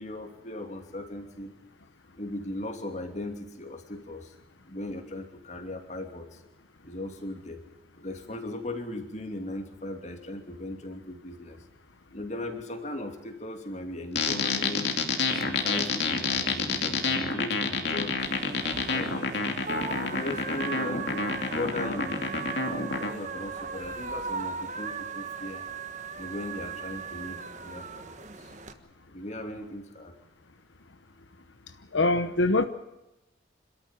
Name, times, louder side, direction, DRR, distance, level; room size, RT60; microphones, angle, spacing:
voice 1, 0.0-1.5 2.2-4.3 4.7-6.4 6.8-7.6 8.0-11.6 12.1-18.2 18.5-19.3 19.8-22.5 23.0-25.6 26.2-28.1 28.4-28.5 29.1-30.1, left 1 dB, 35° left, 5 dB, 2.8 m, -38 dB
sound 1, 14.1-23.1, left 4 dB, 60° left, 2.7 m, -28 dB
sound 2, 18.2-28.7, right 5 dB, 40° right, 1.4 m, -38 dB
voice 2, 31.9-32.6, left 2 dB, 85° left, 9 dB, 1.0 m, -23 dB
26.5 x 13.5 x 8.9 m, 0.97 s
head